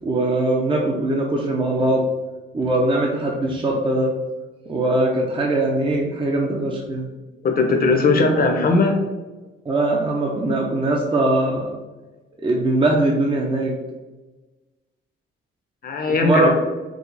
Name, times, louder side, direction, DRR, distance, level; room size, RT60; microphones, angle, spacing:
voice 1, 0.0-2.1 2.5-4.1 4.7-7.1 9.6-11.7 12.4-13.7 16.2-16.5, right 2 dB, 25° right, -1 dB, 0.7 m, -21 dB
voice 2, 7.4-9.0 15.8-16.5, left 3 dB, 50° left, 2 dB, 1.0 m, -18 dB
4.9 x 2.4 x 4.0 m, 1.2 s
cardioid pair, 90°, 20 cm